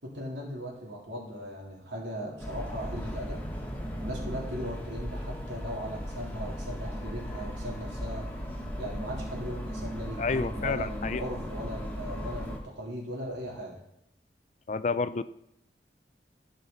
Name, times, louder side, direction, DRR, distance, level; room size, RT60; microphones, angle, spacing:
voice 1, 0.0-3.4 4.0-8.3 8.8-13.8, equal, 80° right, -3 dB, 3.6 m, -38 dB
sound 1, 2.4-12.6, equal, 10° left, 1.6 m, -37 dB
voice 2, 10.2-11.2 14.7-15.2, left 4 dB, 40° left, 14 dB, 0.4 m, -29 dB
16.0 x 5.8 x 4.1 m, 0.81 s
head